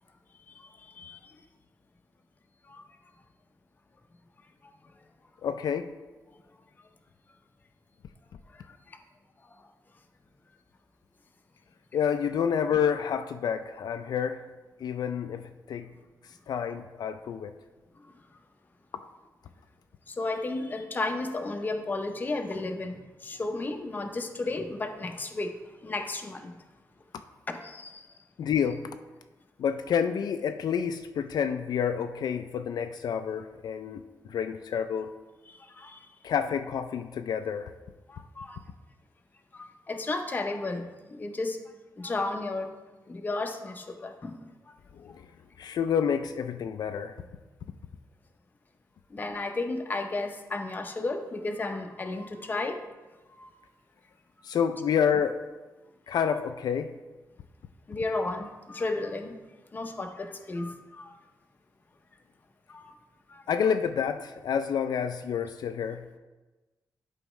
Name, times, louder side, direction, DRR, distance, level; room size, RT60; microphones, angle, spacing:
voice 1, 0.5-1.4 2.7-2.8 6.3-6.4 8.5-9.0 9.5-9.7 18.0-18.1 20.1-26.6 27.5-28.1 35.5-36.1 38.1-38.6 39.5-41.6 42.0-42.7 43.1-44.5 49.1-52.8 53.4-53.5 57.9-59.4 59.7-61.2 62.7-62.9 63.3-63.4, left 2 dB, 25° left, 5 dB, 0.6 m, -34 dB
voice 2, 5.4-5.9 11.9-14.4 14.8-15.9 16.5-17.5 28.4-28.9 29.6-34.0 34.3-35.1 36.2-37.7 45.0-45.2 45.6-47.2 54.4-55.4 56.1-56.9 63.5-66.1, left 7 dB, 75° left, 8 dB, 0.4 m, -29 dB
11.0 x 4.6 x 3.1 m, 1.2 s
wide cardioid pair, 170°, 7 cm